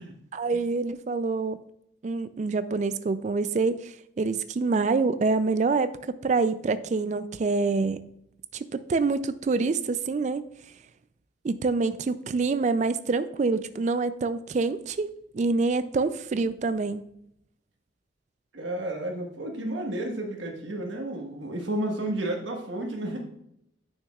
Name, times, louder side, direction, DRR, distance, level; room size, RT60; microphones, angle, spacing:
voice 1, 0.3-1.6 2.0-8.0 8.5-10.4 11.4-15.1 15.3-17.0, right 4 dB, 35° right, 13 dB, 0.3 m, -26 dB
voice 2, 18.5-23.3, right 1 dB, 75° right, 2 dB, 1.4 m, -32 dB
9.0 x 6.4 x 2.3 m, 0.76 s
head